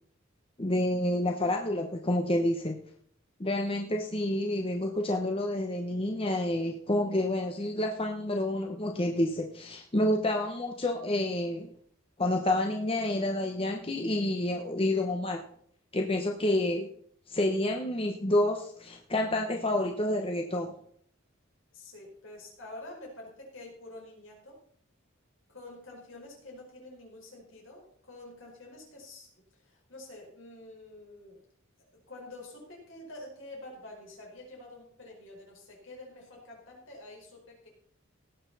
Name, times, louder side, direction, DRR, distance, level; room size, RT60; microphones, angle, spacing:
voice 1, 0.6-2.8 3.4-11.7 12.2-15.4 15.9-16.9 17.3-20.8, left 1 dB, 25° left, 2 dB, 1.0 m, -29 dB
voice 2, 21.7-24.6 25.5-31.4 32.1-37.7, left 2 dB, 65° left, -2 dB, 4.9 m, -48 dB
18.0 x 8.0 x 4.1 m, 0.63 s
head